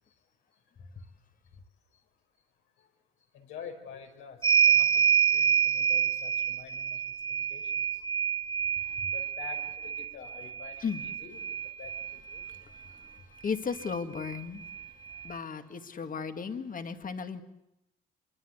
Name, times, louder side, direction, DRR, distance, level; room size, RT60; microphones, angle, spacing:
voice 1, 3.3-7.0 7.3-8.0 9.1-11.4 11.8-12.6, left 7 dB, 90° left, 3 dB, 5.0 m, -48 dB
sound 1, 4.4-12.5 13.8-13.9 14.2-15.3, right 7 dB, 25° right, 1.2 m, -28 dB
voice 2, 12.4-14.6 15.1-17.4, left 5 dB, 45° left, 8 dB, 2.2 m, -36 dB
25.0 x 23.0 x 8.1 m, 0.88 s
cardioid pair, 90°, 20 cm